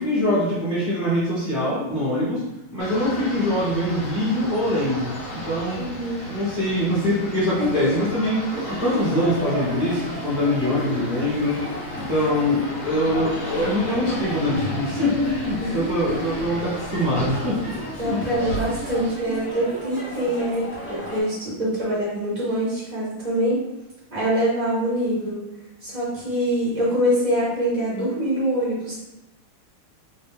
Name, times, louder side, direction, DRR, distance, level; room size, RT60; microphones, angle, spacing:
voice 1, 0.0-2.4 2.7-5.8 6.3-8.4 8.7-11.6 12.0-17.7 18.0-18.2, left 1 dB, 35° left, -9 dB, 0.8 m, -23 dB
sound 1, 2.8-19.1, equal, 65° left, 1.3 m, -36 dB
voice 2, 5.8-6.2 7.6-8.0 15.6-15.9 17.9-23.6 24.1-25.4 25.8-28.9, equal, 45° right, -7 dB, 0.5 m, -24 dB
sound 2, 8.5-21.2, right 1 dB, 15° left, 0.4 m, -34 dB
3.9 x 2.2 x 3.5 m, 0.94 s
omnidirectional pair, 2.3 m